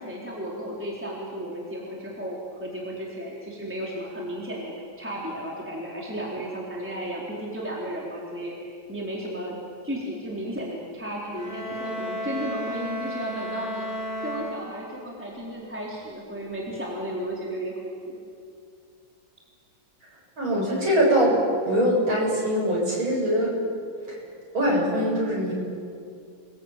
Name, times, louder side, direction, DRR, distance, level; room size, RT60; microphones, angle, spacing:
voice 1, 0.0-9.6 9.8-13.9 14.2-18.2, right 1 dB, 5° right, -4 dB, 3.9 m, -34 dB
sound 1, 11.3-15.1, equal, 60° right, 9.0 m, -33 dB
voice 2, 20.4-23.6 24.1-24.2 24.5-25.5, equal, 85° right, -3 dB, 8.9 m, -22 dB
29.0 x 21.5 x 9.1 m, 2.4 s
omnidirectional pair, 2.2 m